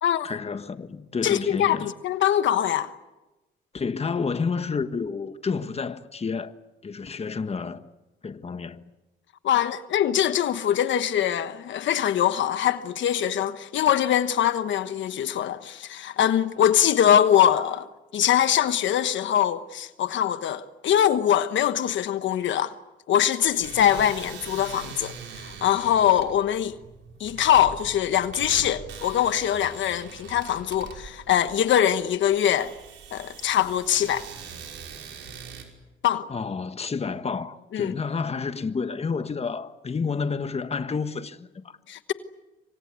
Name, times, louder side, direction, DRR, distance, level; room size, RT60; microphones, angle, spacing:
voice 1, 0.2-1.9 3.7-6.5 6.8-7.8 8.2-8.8 36.3-41.8, left 5 dB, 30° left, 1.4 m, -30 dB
voice 2, 1.2-2.9 9.4-22.7 23.1-26.8 27.2-32.7 33.1-34.3 36.0-36.3 37.7-37.9 41.9-42.1, left 10 dB, 70° left, 1.2 m, -23 dB
sound 1, 23.5-35.6, right 6 dB, 75° right, 5.6 m, -42 dB
27.0 x 24.5 x 8.3 m
cardioid pair, 90°, 20 cm